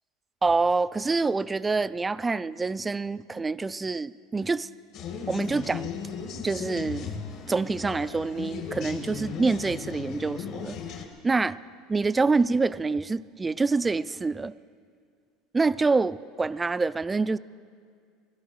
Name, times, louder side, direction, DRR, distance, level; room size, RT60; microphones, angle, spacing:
voice 1, 0.4-4.7 5.3-5.9 6.4-7.1 7.5-10.8 11.2-11.6 11.9-14.5 15.5-17.4, right 3 dB, 15° right, 16 dB, 0.4 m, -26 dB
sound 1, 4.9-11.1, left 6 dB, 60° left, 1.9 m, -36 dB
17.0 x 12.0 x 6.4 m, 2.1 s
supercardioid pair, 115°, 0 cm